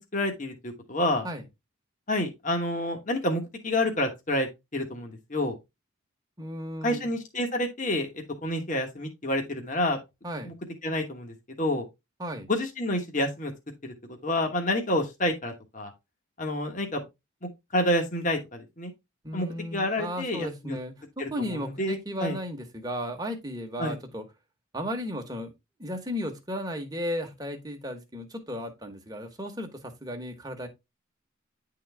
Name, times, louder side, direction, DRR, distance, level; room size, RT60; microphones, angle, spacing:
voice 1, 0.0-1.3 2.1-4.5 4.7-5.6 6.8-10.0 10.4-10.5 10.8-11.9 12.5-13.5 13.8-13.9 14.2-15.9 16.4-17.0 17.4-18.9 19.3-20.8 21.2-22.4 23.8-24.0, left 1 dB, 35° left, 1.2 m, -29 dB
voice 2, 6.4-7.1 10.2-10.5 12.2-12.5 19.2-21.0 21.3-24.2 24.7-25.5 25.8-30.7, equal, 20° right, 1.2 m, -35 dB
10.0 x 3.9 x 3.4 m
head